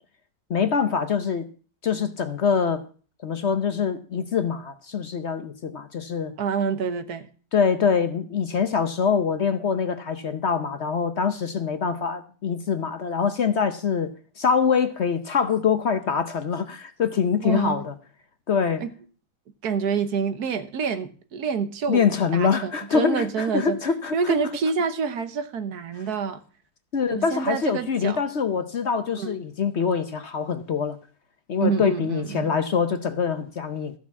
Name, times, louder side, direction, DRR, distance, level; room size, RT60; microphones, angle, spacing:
voice 1, 0.5-1.5 1.8-2.8 3.2-6.3 7.5-17.9 18.5-18.8 21.9-24.4 26.9-31.0 31.5-33.9, left 6 dB, 50° left, 0.9 m, -24 dB
voice 2, 6.4-7.3 17.4-17.8 18.8-18.9 19.6-22.0 22.3-23.8 24.1-26.4 27.1-28.2 29.2-29.4 31.6-32.5, right 6 dB, 70° right, 1.5 m, -27 dB
14.5 x 6.1 x 7.2 m
omnidirectional pair, 1.7 m